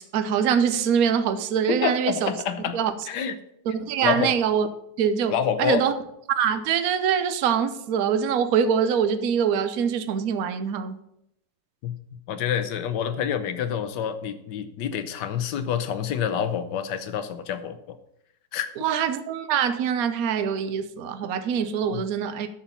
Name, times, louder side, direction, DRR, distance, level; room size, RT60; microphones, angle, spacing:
voice 1, 0.0-2.3 2.7-2.9 3.7-4.7 5.0-5.3 5.6-5.9 6.3-11.0 18.8-22.5, right 7 dB, 60° right, 1.1 m, -24 dB
voice 2, 1.7-2.8 3.1-3.4 4.0-4.3 5.3-5.8 11.8-11.9 12.3-18.0 18.5-18.7 21.9-22.0, left 8 dB, 75° left, 1.5 m, -27 dB
11.0 x 4.4 x 7.0 m
omnidirectional pair, 1.9 m